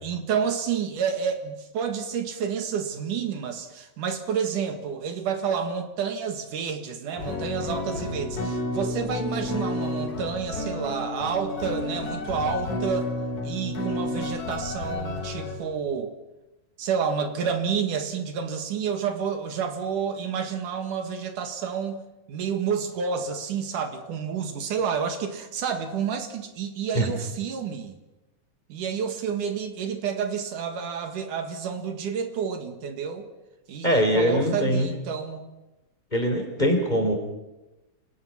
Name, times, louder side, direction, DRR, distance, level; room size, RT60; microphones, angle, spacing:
voice 1, 0.0-13.1 13.4-16.2 16.8-22.0 22.3-28.0 28.7-33.3 33.7-35.5, right 6 dB, 75° right, 7 dB, 3.4 m, -29 dB
sound 1, 7.2-15.6, left 2 dB, 70° left, 5.3 m, -31 dB
voice 2, 33.8-34.9 36.1-37.1, equal, 15° left, 3 dB, 4.1 m, -22 dB
29.0 x 19.5 x 5.9 m, 1.0 s
omnidirectional pair, 3.6 m